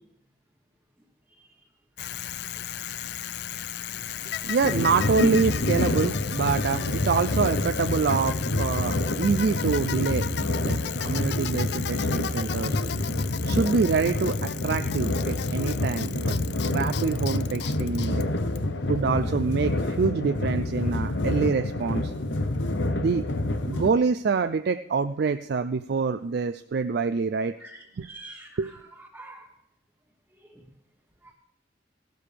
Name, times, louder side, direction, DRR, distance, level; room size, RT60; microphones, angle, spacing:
Bicycle, 2.0-19.0, left 9 dB, 60° left, 0.4 m, -35 dB
voice 1, 4.4-12.8 13.2-16.4 16.7-18.2 18.9-22.1 23.0-23.2 23.7-27.5 28.0-28.1 28.6-28.7, right 5 dB, 55° right, 10 dB, 0.4 m, -26 dB
sound 1, 4.6-23.9, left 1 dB, 75° left, 0.9 m, -28 dB
voice 2, 27.6-28.8 29.1-29.5 31.2-31.3, right 2 dB, 10° right, -2 dB, 1.2 m, -45 dB
16.0 x 12.0 x 3.4 m, 0.79 s
head